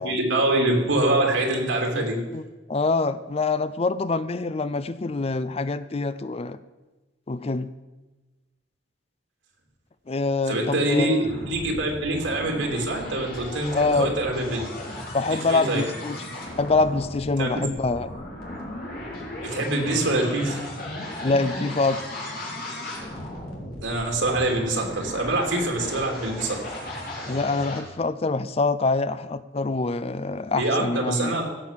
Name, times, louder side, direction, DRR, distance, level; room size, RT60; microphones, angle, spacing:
voice 1, 0.0-2.2 10.5-14.7 15.3-15.8 17.4-17.5 19.4-20.6 23.8-26.6 30.6-31.4, right 2 dB, 90° right, 1 dB, 3.0 m, -24 dB
voice 2, 2.7-6.6 7.3-7.7 10.1-11.2 13.7-14.1 15.1-16.3 16.6-18.1 21.2-22.0 27.2-31.4, left 3 dB, 30° left, 14 dB, 0.4 m, -25 dB
sound 1, 11.2-27.8, left 1 dB, 50° left, 3.2 m, -36 dB
16.5 x 6.5 x 7.4 m, 1.2 s
head